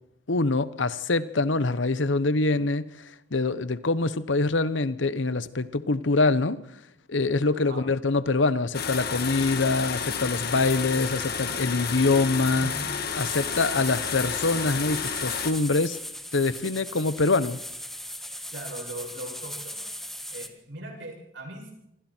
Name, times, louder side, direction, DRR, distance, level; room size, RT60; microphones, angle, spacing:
voice 1, 0.3-6.6 7.1-12.7 13.1-16.0 16.3-17.6, left 3 dB, 75° left, 1.0 m, -25 dB
sound 1, 8.7-15.5, left 7 dB, 55° left, 1.8 m, -31 dB
sound 2, 13.2-20.5, equal, ahead, 1.7 m, -38 dB
sound 3, 14.4-14.5 14.8-14.9, left 1 dB, 35° left, 3.3 m, -51 dB
voice 2, 18.5-19.9 20.3-21.7, right 1 dB, 75° right, 7.5 m, -39 dB
27.0 x 25.0 x 4.5 m
head